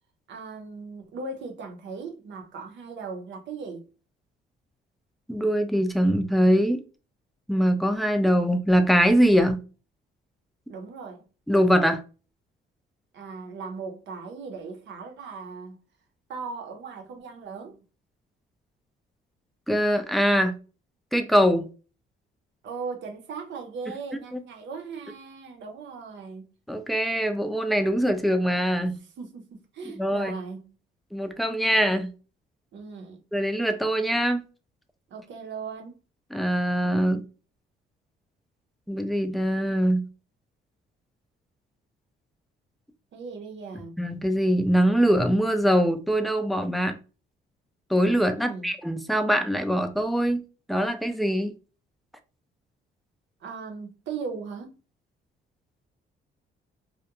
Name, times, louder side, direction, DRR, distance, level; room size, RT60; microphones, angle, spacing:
voice 1, 0.3-3.9 10.7-11.2 13.1-15.8 16.3-17.8 22.6-26.5 29.2-30.7 32.7-33.2 35.1-35.9 43.1-44.0 48.4-48.7 53.4-54.7, right 4 dB, 65° right, 0.7 m, -38 dB
voice 2, 5.3-6.8 7.5-9.6 11.5-12.0 19.7-20.6 21.1-21.7 24.3-24.4 26.7-29.0 30.0-30.3 31.1-32.1 33.3-34.4 36.3-37.2 38.9-40.0 44.0-47.0 47.9-50.4 50.7-51.5, equal, ahead, 0.3 m, -23 dB
2.3 x 2.1 x 2.8 m
cardioid pair, 90°, 20 cm